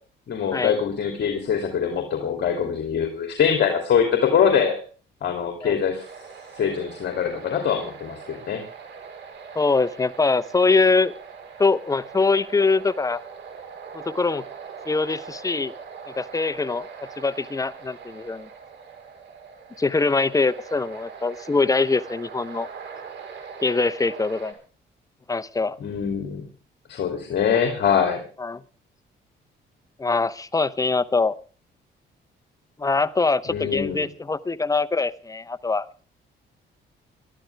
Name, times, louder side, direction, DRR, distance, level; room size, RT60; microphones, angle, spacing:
voice 1, 0.3-4.8 5.2-6.0 6.5-8.6 25.8-26.4 26.9-28.2 33.5-34.1, left 7 dB, 60° left, 4 dB, 2.8 m, -23 dB
sound 1, 6.0-24.5, right 6 dB, 65° right, 4.4 m, -42 dB
voice 2, 9.5-11.1 11.6-13.2 13.9-14.5 14.9-15.7 16.1-16.9 17.2-18.5 19.8-22.7 23.6-24.5 25.3-25.8 28.4-28.6 30.0-31.3 32.8-36.0, left 3 dB, 15° left, 13 dB, 0.8 m, -23 dB
21.5 x 13.0 x 3.5 m, 0.38 s
cardioid pair, 90°, 20 cm